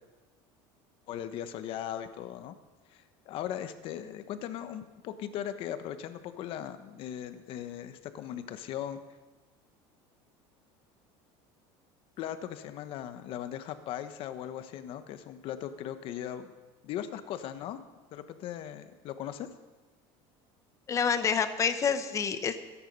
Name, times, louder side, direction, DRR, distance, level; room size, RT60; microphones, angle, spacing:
voice 1, 1.1-2.5 2.9-9.0 12.2-16.5 16.8-17.8 18.1-19.5, left 10 dB, 50° left, 10 dB, 1.1 m, -38 dB
voice 2, 20.9-22.6, left 6 dB, 25° left, 10 dB, 1.0 m, -27 dB
22.5 x 10.0 x 5.4 m, 1.2 s
cardioid pair, 150°, 12 cm